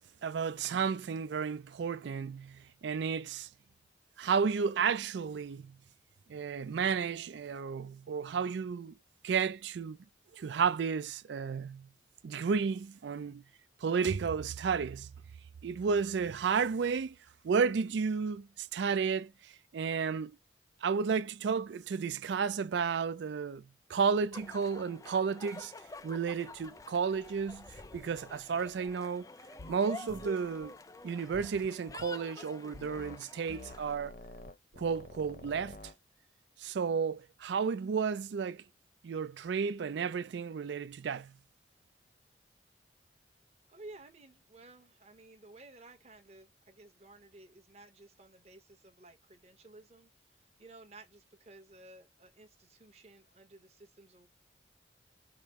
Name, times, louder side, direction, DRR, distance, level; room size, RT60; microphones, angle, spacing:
voice 1, 0.2-3.5 4.2-5.7 6.3-9.0 9.2-10.0 10.3-11.9 12.2-13.4 13.8-15.1 15.6-17.2 17.4-20.3 20.8-23.6 23.9-25.7 26.0-27.7 27.9-29.3 29.7-30.7 31.0-34.1 34.7-35.8 36.6-38.6 39.0-41.3, right 6 dB, 70° right, 0.4 m, -32 dB
sound 1, 24.3-34.0, left 3 dB, 20° left, 0.3 m, -49 dB
sound 2, 29.6-29.8 30.1-30.3 31.3-32.1 32.7-33.2 33.5-36.0, left 2 dB, 50° left, 0.9 m, -48 dB
voice 2, 43.7-54.3, right 2 dB, 35° right, 1.0 m, -55 dB
5.0 x 2.0 x 3.2 m
head